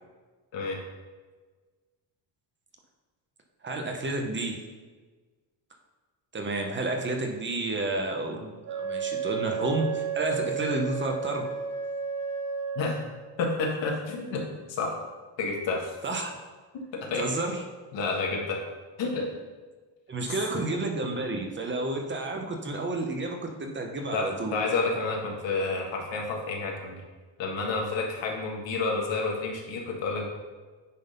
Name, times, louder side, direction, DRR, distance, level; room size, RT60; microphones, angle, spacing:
voice 1, 3.6-4.6 6.3-11.5 16.0-16.3 17.2-17.6 20.1-24.6, right 2 dB, 25° right, 3 dB, 0.9 m, -30 dB
Wind instrument woodwind instrument, 8.6-13.3, right 5 dB, 60° right, 1.1 m, -32 dB
voice 2, 13.4-14.4 14.7-14.9 15.4-15.9 16.7-17.2 17.9-18.6 19.0-19.3 20.6-20.7 24.1-27.0 27.4-30.3, left 3 dB, 70° left, 0 dB, 1.8 m, -30 dB
9.5 x 3.9 x 5.2 m, 1.4 s
cardioid pair, 175°, 46 cm